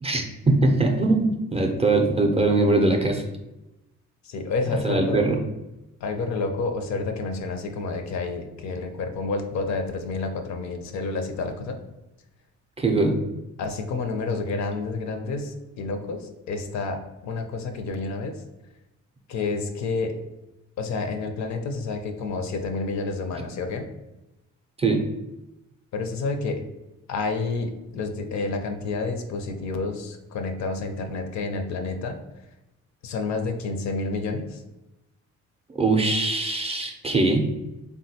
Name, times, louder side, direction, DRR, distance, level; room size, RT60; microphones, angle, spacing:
voice 1, 0.0-3.2 4.8-5.4 12.8-13.2 24.8-25.0 35.8-37.5, right 2 dB, 20° right, 1 dB, 0.4 m, -21 dB
voice 2, 4.3-5.2 6.0-11.8 13.6-18.4 19.3-20.1 20.8-23.9 25.9-26.6 27.1-32.2 33.0-34.6, left 3 dB, 65° left, 6 dB, 0.5 m, -29 dB
3.4 x 2.2 x 2.7 m, 0.99 s
cardioid pair, 90°, 30 cm